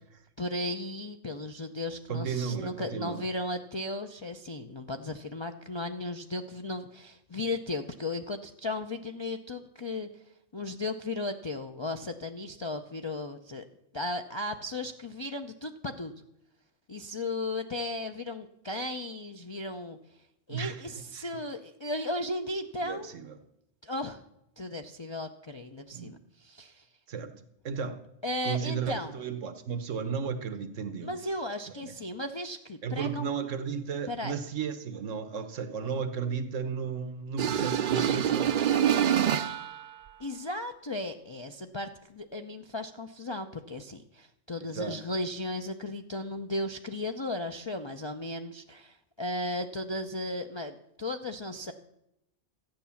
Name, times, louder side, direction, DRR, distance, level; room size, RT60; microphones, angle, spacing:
voice 1, 0.4-10.1 10.5-13.6 13.9-16.1 16.9-20.0 20.5-23.1 23.8-24.2 24.6-26.8 28.2-29.1 31.0-33.3 34.1-34.4 40.2-51.7, left 2 dB, 35° left, 4 dB, 0.5 m, -35 dB
voice 2, 2.1-3.2 20.5-20.8 21.1-21.2 22.8-23.4 25.9-26.1 27.1-28.0 28.4-31.2 31.8-31.9 32.8-38.5 44.6-45.0, right 6 dB, 80° right, 10 dB, 1.4 m, -34 dB
sound 1, 37.4-39.8, right 9 dB, 50° right, 0.6 m, -26 dB
13.5 x 9.2 x 7.1 m, 0.83 s
omnidirectional pair, 1.3 m